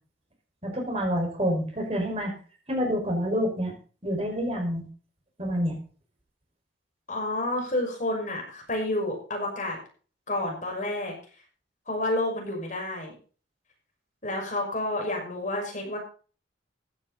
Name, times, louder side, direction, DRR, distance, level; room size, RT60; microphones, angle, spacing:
voice 1, 0.6-2.3 2.7-3.7 4.0-4.8 5.4-5.7, equal, 35° right, 1 dB, 5.6 m, -27 dB
voice 2, 7.1-9.8 10.3-11.2 11.9-13.1 14.2-16.0, left 1 dB, 40° left, 1 dB, 6.0 m, -29 dB
15.5 x 10.5 x 4.2 m, 0.39 s
head